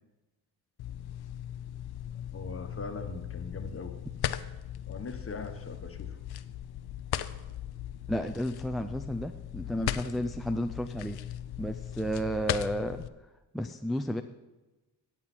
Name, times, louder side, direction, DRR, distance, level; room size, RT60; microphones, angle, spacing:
sound 1, 0.8-13.1, left 11 dB, 65° left, 0.6 m, -38 dB
voice 1, 2.3-4.0 4.9-6.2 9.6-10.2, left 3 dB, 35° left, 7 dB, 1.3 m, -41 dB
voice 2, 8.1-11.2 11.6-13.0 13.5-14.2, equal, ahead, 5 dB, 0.4 m, -32 dB
14.5 x 8.9 x 4.4 m, 1.1 s
cardioid pair, 100°, 41 cm